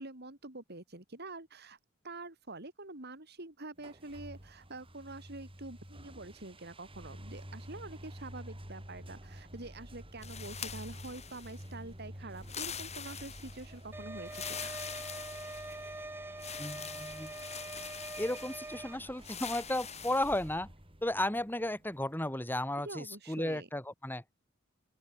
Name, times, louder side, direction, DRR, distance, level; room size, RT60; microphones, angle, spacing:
voice 1, 0.0-1.8 2.0-14.7 22.8-23.7, right 2 dB, 55° right, 4.0 m, -46 dB
sound 1, 3.8-22.3, equal, 30° right, 7.7 m, -50 dB
sound 2, 10.2-11.7 12.4-13.7 14.2-15.9 16.4-18.8 19.2-20.5, left 8 dB, 35° left, 4.5 m, -44 dB
sound 3, 13.9-19.0, right 2 dB, 10° right, 1.4 m, -44 dB
voice 2, 16.6-17.4 18.2-20.7 21.0-24.2, left 1 dB, 10° left, 4.8 m, -34 dB
open air
head